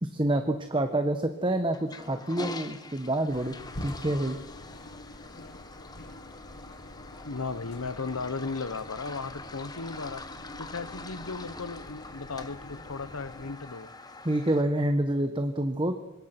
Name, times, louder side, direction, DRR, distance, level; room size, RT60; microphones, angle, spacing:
voice 1, 0.0-3.5 3.8-4.4 14.2-15.9, right 1 dB, 25° right, 7 dB, 1.3 m, -27 dB
Toilet flush, 1.7-14.6, left 3 dB, 20° left, 1.3 m, -45 dB
sound 1, 3.3-13.6, left 1 dB, 50° left, 2.0 m, -46 dB
voice 2, 7.2-10.2 10.6-13.9, left 4 dB, 90° left, 15 dB, 1.1 m, -36 dB
25.0 x 23.0 x 6.0 m, 1.0 s
head